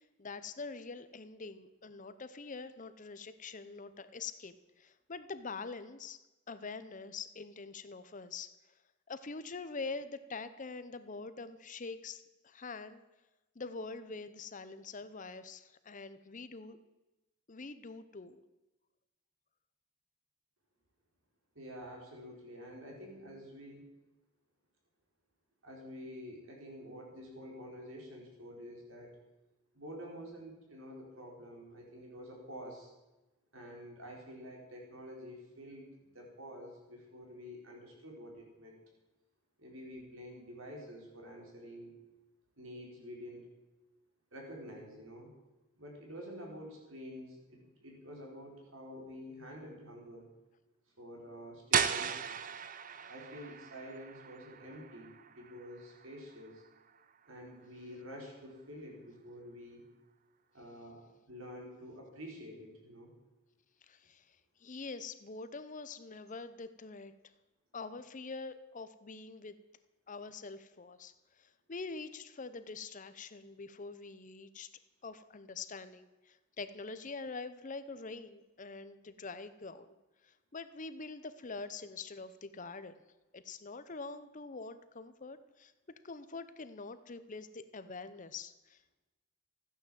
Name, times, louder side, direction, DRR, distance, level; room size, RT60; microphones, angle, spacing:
voice 1, 0.0-6.2 6.5-8.5 9.1-13.0 13.6-16.8 17.5-18.4 63.8-67.1 67.7-69.6 70.1-74.7 75.0-80.0 80.2-83.0 83.3-85.7 86.0-88.9, left 4 dB, 35° left, 12 dB, 0.7 m, -45 dB
voice 2, 21.5-23.9 25.6-29.2 29.7-32.9 33.5-38.8 39.6-41.9 42.6-43.5 44.3-45.3 45.8-50.3 51.0-52.4 53.1-56.6 57.3-59.9 60.5-61.0 61.3-63.1, equal, 65° right, 0 dB, 4.2 m, -48 dB
sound 1, 51.7-57.4, right 7 dB, 40° right, 0.6 m, -37 dB
14.5 x 9.8 x 7.5 m, 1.0 s
head